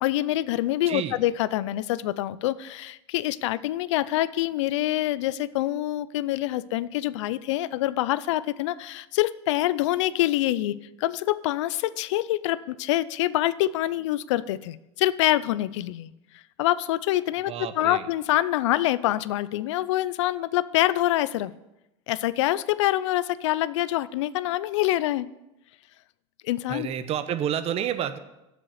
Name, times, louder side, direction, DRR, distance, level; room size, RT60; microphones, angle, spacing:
voice 1, 0.0-16.1 16.6-21.5 22.1-25.3 26.4-26.9, left 15 dB, 80° left, 17 dB, 0.5 m, -25 dB
voice 2, 0.9-1.2 17.5-18.1 26.7-28.2, right 9 dB, 40° right, 11 dB, 0.9 m, -29 dB
7.6 x 6.7 x 7.9 m, 0.93 s
supercardioid pair, 105°, 15 cm